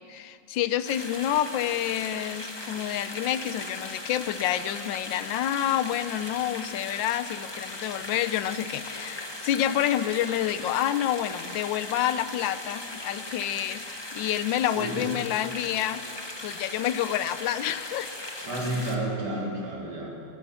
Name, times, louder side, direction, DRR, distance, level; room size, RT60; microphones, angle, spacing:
voice 1, 0.0-13.9 14.1-16.0 16.4-18.1, left 11 dB, 90° left, 13 dB, 1.4 m, -28 dB
sound 1, 0.8-19.0, left 2 dB, 15° left, 1.1 m, -38 dB
voice 2, 14.8-15.1 18.4-20.1, right 1 dB, 60° right, -4 dB, 3.9 m, -31 dB
20.5 x 10.5 x 6.1 m, 2.5 s
omnidirectional pair, 2.0 m